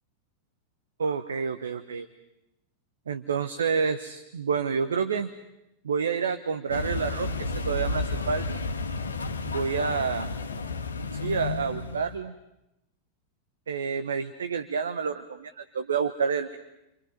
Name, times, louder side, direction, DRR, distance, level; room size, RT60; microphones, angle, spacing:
voice 1, 1.0-2.1 3.1-5.3 5.8-8.6 9.4-10.3 11.1-12.3 13.7-16.6, right 6 dB, 70° right, 10 dB, 0.9 m, -29 dB
sound 1, 6.7-12.2, left 3 dB, 75° left, 1.4 m, -32 dB
29.5 x 24.5 x 5.2 m, 0.90 s
figure-of-eight pair, 90°, 0 cm